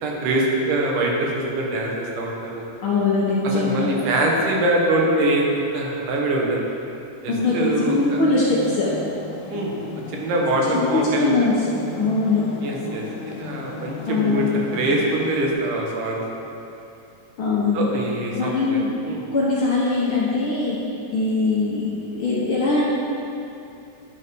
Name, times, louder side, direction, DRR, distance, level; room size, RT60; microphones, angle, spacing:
voice 1, 0.0-2.6 3.5-5.5 5.7-6.6 7.2-8.2 9.5-9.8 10.1-11.3 12.6-16.2 17.7-19.2, right 1 dB, 85° right, -1 dB, 2.7 m, -23 dB
voice 2, 2.8-3.9 7.3-8.9 10.6-12.4 14.1-14.5 17.4-17.9 18.4-18.9 19.3-22.9, left 3 dB, 60° left, -7 dB, 1.4 m, -22 dB
sound 1, 7.4-15.5, left 5 dB, 80° left, 1.9 m, -36 dB
11.5 x 4.3 x 5.2 m, 2.7 s
omnidirectional pair, 3.6 m